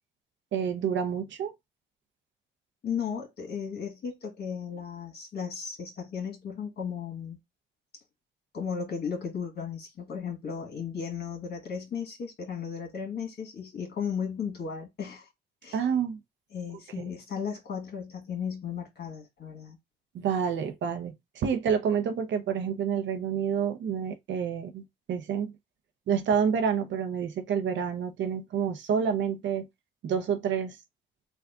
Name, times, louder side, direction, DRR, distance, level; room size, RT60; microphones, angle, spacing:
voice 1, 0.5-1.5 15.7-16.2 17.0-17.1 20.1-25.5 26.1-29.7 30.0-30.8, right 7 dB, 70° right, 0.8 m, -28 dB
voice 2, 2.8-7.4 8.5-15.3 15.6-15.9 16.5-19.8, left 7 dB, 55° left, 1.6 m, -35 dB
3.5 x 2.5 x 3.6 m
cardioid pair, 90°, 20 cm